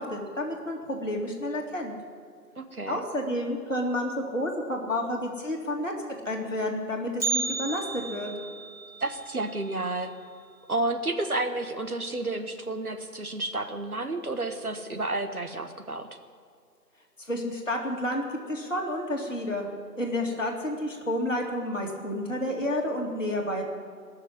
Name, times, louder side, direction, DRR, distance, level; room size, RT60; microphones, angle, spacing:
voice 1, 0.0-1.9 2.9-5.9 6.2-8.3 17.3-19.7 20.0-23.6, left 1 dB, 50° left, 0 dB, 2.5 m, -30 dB
voice 2, 2.6-3.0 9.0-10.1 10.7-16.1, right 2 dB, 65° right, 7 dB, 1.4 m, -31 dB
Bell, 7.2-11.3 11.6-11.7 12.2-12.3 13.1-13.2 13.9-14.2 14.6-14.7, right 4 dB, 90° right, 3.6 m, -35 dB
19.5 x 6.6 x 9.6 m, 2.2 s
figure-of-eight pair, 180°, 49 cm